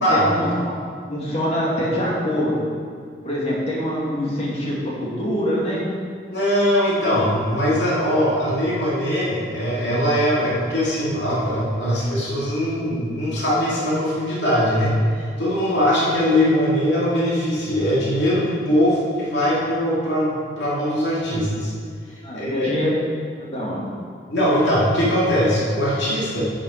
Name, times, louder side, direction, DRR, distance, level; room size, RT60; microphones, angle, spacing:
voice 1, 0.1-0.8 1.1-2.6 3.2-5.8 22.2-22.9 23.4-23.8, equal, 35° left, -5 dB, 2.6 m, -24 dB
voice 2, 6.3-21.7 22.3-22.7 24.3-26.4, equal, 70° left, -7 dB, 2.8 m, -21 dB
11.0 x 7.4 x 5.0 m, 2.1 s
head